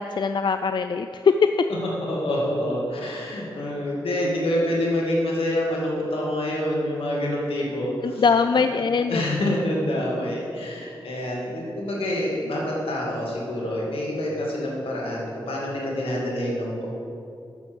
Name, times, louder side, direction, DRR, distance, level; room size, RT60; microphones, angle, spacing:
voice 1, 0.0-1.3 8.0-9.2, left 5 dB, 55° left, 8 dB, 0.3 m, -22 dB
voice 2, 2.1-8.2 9.1-16.9, left 1 dB, 80° left, -3 dB, 2.2 m, -27 dB
7.2 x 6.2 x 7.8 m, 2.5 s
cardioid pair, 50°, 9 cm